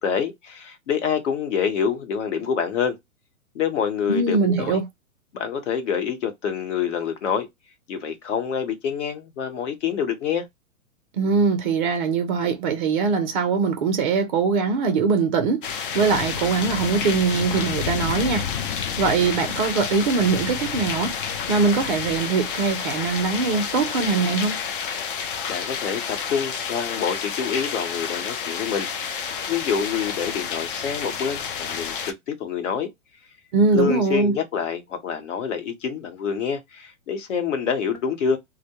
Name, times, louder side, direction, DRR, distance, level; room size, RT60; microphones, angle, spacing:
voice 1, 0.0-3.0 3.5-4.8 5.3-7.5 7.9-10.5 25.5-32.9 33.7-38.4, left 7 dB, 55° left, 0.9 m, -26 dB
voice 2, 4.1-4.8 11.1-15.7 15.9-18.5 19.0-21.1 21.5-24.6 33.5-34.4, right 4 dB, 35° right, 0.4 m, -22 dB
sound 1, 15.6-32.1, left 7 dB, 40° left, 0.4 m, -29 dB
2.1 x 2.1 x 2.8 m
hypercardioid pair, 125°, 43 cm